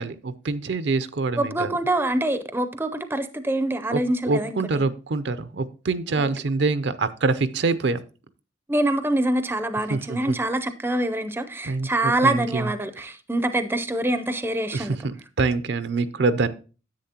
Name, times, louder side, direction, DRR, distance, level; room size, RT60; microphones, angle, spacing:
voice 1, 0.0-1.7 3.9-8.0 9.9-10.3 11.6-12.7 14.7-16.5, right 3 dB, 65° right, 13 dB, 0.5 m, -25 dB
voice 2, 1.4-4.9 6.2-6.3 8.7-15.0, right 1 dB, 10° right, 10 dB, 0.5 m, -25 dB
10.0 x 7.9 x 2.8 m, 0.35 s
head